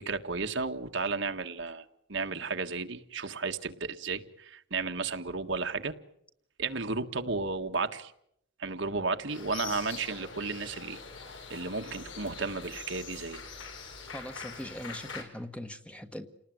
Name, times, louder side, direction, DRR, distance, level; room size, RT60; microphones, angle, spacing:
voice 1, 0.0-5.9 6.6-8.1 8.6-11.0 11.5-13.4, right 4 dB, 65° right, 6 dB, 1.6 m, -33 dB
sound 1, 9.3-15.2, left 5 dB, 70° left, 5.3 m, -44 dB
voice 2, 14.1-16.3, left 1 dB, 5° left, 8 dB, 1.3 m, -41 dB
29.5 x 19.5 x 9.3 m, 0.76 s
head